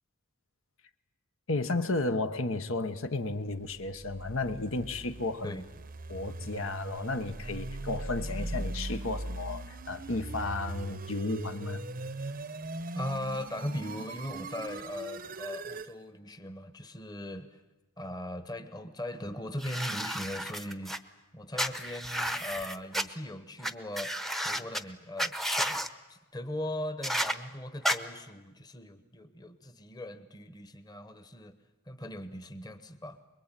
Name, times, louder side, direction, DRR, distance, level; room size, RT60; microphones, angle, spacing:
voice 1, 1.5-5.5 6.1-11.8, left 2 dB, 75° left, 9 dB, 1.3 m, -33 dB
sound 1, 3.7-15.9, right 2 dB, 40° right, 0.8 m, -40 dB
voice 2, 12.9-17.6 18.0-21.0 21.3-25.8 26.1-31.6 31.9-33.2, left 1 dB, 20° left, 10 dB, 1.1 m, -39 dB
sound 2, 19.6-21.0 21.6-23.0 23.6-23.7 24.0-24.8 25.2-25.9 27.0-27.3 27.8-28.0, equal, ahead, 0.8 m, -32 dB
24.5 x 22.0 x 9.1 m, 1.1 s
head